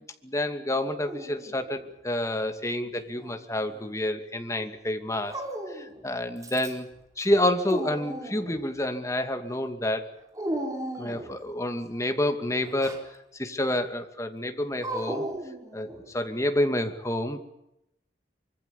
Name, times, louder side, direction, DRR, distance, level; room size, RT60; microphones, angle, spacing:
voice 1, 0.2-5.3 5.7-6.9 7.2-10.1 11.0-15.2 15.7-15.9 16.1-17.4, left 1 dB, 15° left, 6 dB, 2.6 m, -28 dB
Dog, 1.1-1.9 3.0-3.8 5.3-6.0 6.4-6.9 7.3-8.6 10.4-11.4 12.6-13.1 14.8-16.1, right 1 dB, 20° right, 4.3 m, -36 dB
25.0 x 24.5 x 7.1 m, 0.84 s
head